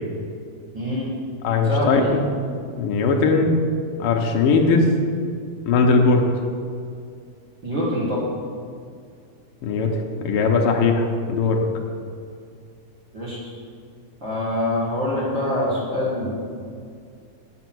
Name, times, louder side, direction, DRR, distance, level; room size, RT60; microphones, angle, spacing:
voice 1, 0.7-1.1 1.6-2.1 7.6-8.2 13.1-13.4 14.2-16.4, left 1 dB, 45° right, -8 dB, 2.1 m, -24 dB
voice 2, 1.4-2.2 2.8-3.6 4.0-4.8 5.7-6.2 9.6-9.9 10.2-11.6, left 4 dB, 85° left, 2 dB, 1.2 m, -19 dB
7.7 x 7.1 x 6.1 m, 2.3 s
omnidirectional pair, 3.5 m